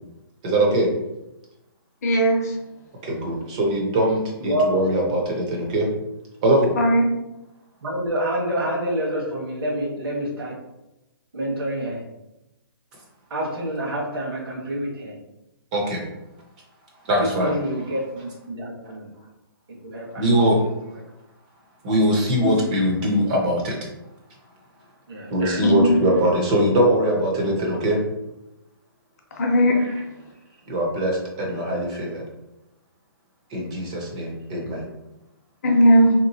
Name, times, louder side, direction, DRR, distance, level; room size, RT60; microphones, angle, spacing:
voice 1, 0.4-0.9 3.0-5.9 6.4-6.7 15.7-16.0 17.0-17.5 20.2-20.6 21.8-23.8 25.3-28.0 29.8-29.9 30.7-32.2 33.5-34.8, right 1 dB, 20° right, -1 dB, 0.4 m, -21 dB
voice 2, 2.0-2.5 6.8-7.0 22.4-22.5 25.6-26.0 29.4-29.8 35.6-36.1, equal, 40° left, 0 dB, 0.6 m, -17 dB
voice 3, 7.8-10.6 11.3-12.0 13.3-15.1 17.2-19.1 19.8-21.0 25.1-25.3, right 1 dB, 80° right, -3 dB, 1.2 m, -28 dB
3.0 x 2.9 x 2.6 m, 0.93 s
hypercardioid pair, 170°, 12 cm